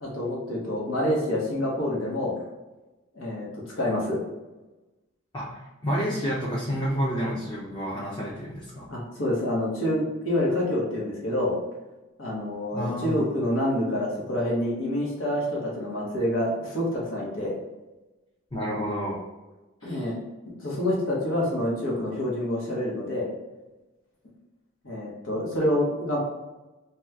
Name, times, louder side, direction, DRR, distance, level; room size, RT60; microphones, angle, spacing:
voice 1, 0.0-2.3 3.1-3.5 3.7-4.2 8.9-11.5 12.2-17.5 19.8-20.1 20.6-23.3 24.8-26.2, left 1 dB, 90° left, -4 dB, 1.0 m, -27 dB
voice 2, 5.3-8.9 12.7-13.3 18.5-19.2 19.8-20.0, equal, 25° left, -7 dB, 0.6 m, -30 dB
2.8 x 2.3 x 3.4 m, 1.1 s
head